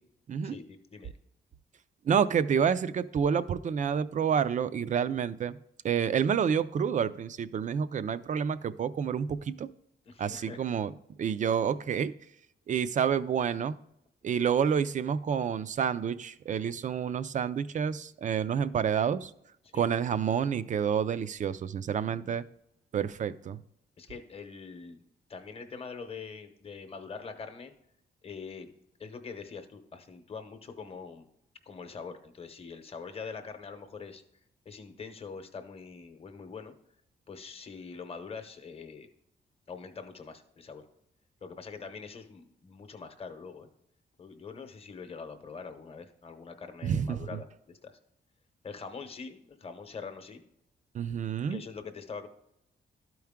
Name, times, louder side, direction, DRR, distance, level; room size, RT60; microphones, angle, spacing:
voice 1, 0.4-1.1 10.1-10.6 19.6-19.9 22.1-22.4 24.0-25.0 25.3-27.7 28.2-28.7 29.0-31.2 31.7-34.2 34.6-36.7 37.3-39.1 39.7-40.9 41.4-43.7 44.2-48.0 48.6-50.4 51.5-52.3, left 5 dB, 30° left, 8 dB, 0.9 m, -44 dB
voice 2, 2.1-5.6 5.8-9.7 10.2-10.9 11.2-12.1 12.7-13.8 14.2-19.3 19.7-22.4 22.9-23.6 46.8-47.2 50.9-51.6, right 7 dB, 40° right, 15 dB, 0.4 m, -28 dB
12.5 x 4.6 x 3.6 m, 0.77 s
wide cardioid pair, 170°, 19 cm